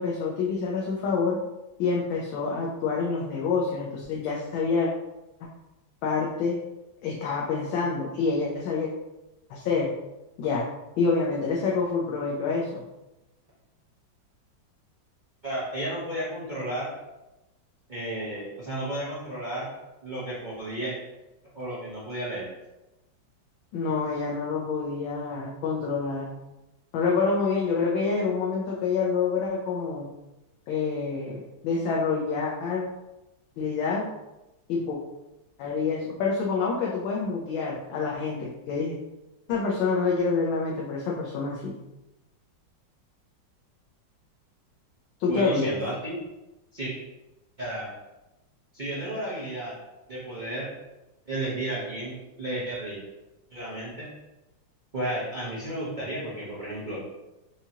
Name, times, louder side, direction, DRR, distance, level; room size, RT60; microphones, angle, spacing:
voice 1, 0.0-1.4 1.8-4.9 6.0-6.6 7.0-8.9 9.5-9.9 10.4-10.7 11.0-12.8 23.7-26.3 26.9-30.1 30.7-32.9 33.6-34.1 34.7-35.0 35.6-39.0 39.5-41.8 45.2-45.7, left 4 dB, 90° left, -3 dB, 1.4 m, -27 dB
voice 2, 15.4-16.9 17.9-19.7 20.0-20.9 21.5-22.5 45.3-46.1 46.7-46.9 47.6-47.9 48.7-49.7 50.1-50.7 51.3-53.0 53.5-54.1 54.9-57.0, right 1 dB, 40° right, -8 dB, 0.6 m, -32 dB
4.8 x 2.8 x 2.8 m, 0.98 s
omnidirectional pair, 2.1 m